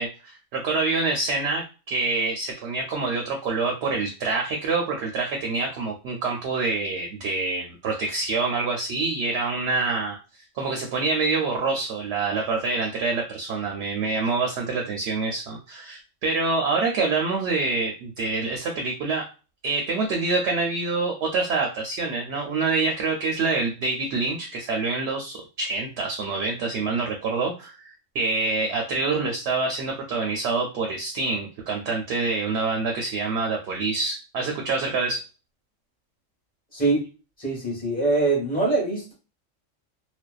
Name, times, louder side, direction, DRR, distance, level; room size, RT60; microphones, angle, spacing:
voice 1, 0.0-10.2 10.5-19.3 19.6-35.2, right 3 dB, 65° right, 1 dB, 0.7 m, -26 dB
voice 2, 36.7-37.1 37.4-39.1, right 3 dB, 10° left, -3 dB, 0.9 m, -23 dB
2.5 x 2.1 x 2.3 m, 0.33 s
omnidirectional pair, 1.4 m